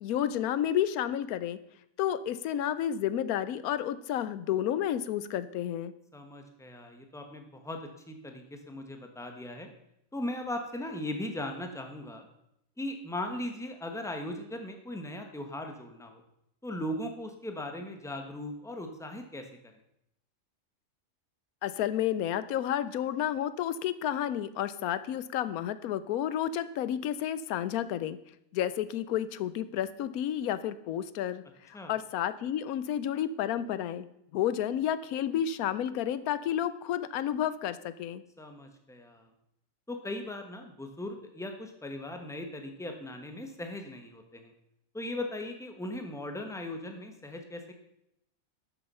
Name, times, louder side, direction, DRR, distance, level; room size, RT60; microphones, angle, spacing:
voice 1, 0.0-1.6 2.0-5.9 21.6-28.2 28.5-34.1 34.3-38.2, left 10 dB, 90° left, 14 dB, 1.1 m, -31 dB
voice 2, 6.1-7.8 8.1-9.7 10.1-12.3 12.8-16.2 16.6-19.4 31.7-31.9 38.4-39.3 39.9-44.5 44.9-47.7, left 1 dB, ahead, 4 dB, 1.1 m, -38 dB
12.0 x 7.0 x 5.5 m, 0.79 s
omnidirectional pair, 1.5 m